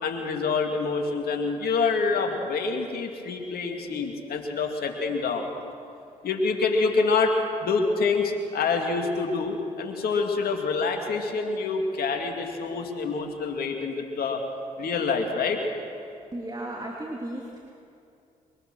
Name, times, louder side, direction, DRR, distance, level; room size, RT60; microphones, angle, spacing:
voice 1, 0.0-5.5 6.2-14.4 14.8-15.6, left 4 dB, 70° left, 3 dB, 2.5 m, -26 dB
voice 2, 16.3-17.6, right 1 dB, 25° right, -1 dB, 3.0 m, -35 dB
23.0 x 19.5 x 6.3 m, 2.6 s
supercardioid pair, 45°, 16 cm